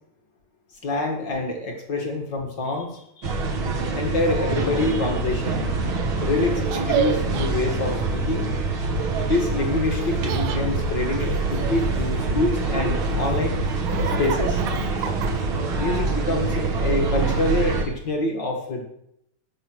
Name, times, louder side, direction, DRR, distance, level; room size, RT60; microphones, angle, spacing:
voice 1, 0.8-3.3 3.9-5.7 6.2-8.5 9.2-13.6 14.2-14.6 15.8-18.8, left 2 dB, 45° left, 2 dB, 1.5 m, -26 dB
sound 1, 3.2-17.9, right 3 dB, 50° right, 1.6 m, -25 dB
Laughter, 6.7-7.5 10.0-10.6 11.2-12.5 13.0-15.6, right 9 dB, 90° right, 3.2 m, -30 dB
19.5 x 7.0 x 6.3 m, 0.77 s
omnidirectional pair, 4.8 m